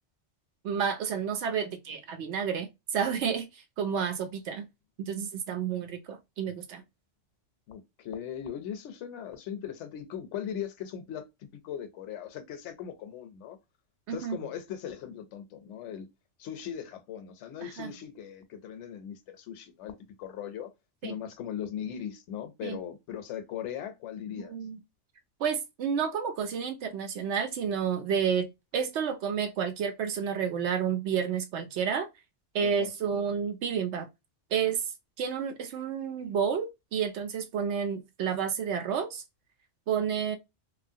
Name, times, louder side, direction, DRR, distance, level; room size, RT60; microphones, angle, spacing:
voice 1, 0.6-4.7 5.0-6.8 14.1-14.4 17.6-17.9 21.0-21.2 22.6-22.8 24.4-24.8 25.4-32.1 32.5-34.1 34.5-34.8 35.2-39.2 39.9-40.4, right 7 dB, 70° right, 0.9 m, -30 dB
voice 2, 7.7-13.6 14.1-16.1 16.4-19.9 20.2-20.7 21.0-24.6 32.6-32.9, left 9 dB, 75° left, 0.9 m, -39 dB
3.0 x 2.4 x 2.7 m
omnidirectional pair, 1.3 m